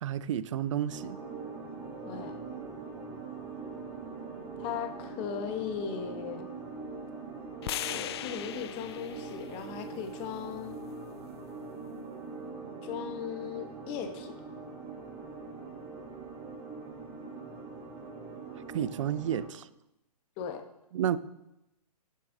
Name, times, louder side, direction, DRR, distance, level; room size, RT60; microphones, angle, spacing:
voice 1, 0.0-1.2 18.7-19.7 20.9-21.2, right 10 dB, 50° right, 16 dB, 0.5 m, -31 dB
sound 1, 0.9-19.5, right 4 dB, 20° right, 3.1 m, -42 dB
voice 2, 2.0-2.4 4.6-6.5 7.9-10.8 12.8-14.3 20.4-20.6, left 8 dB, 25° left, 7 dB, 0.9 m, -37 dB
sound 2, 7.6-11.8, left 12 dB, 40° left, 0.4 m, -41 dB
10.5 x 9.5 x 2.6 m, 0.89 s
hypercardioid pair, 135°, 20 cm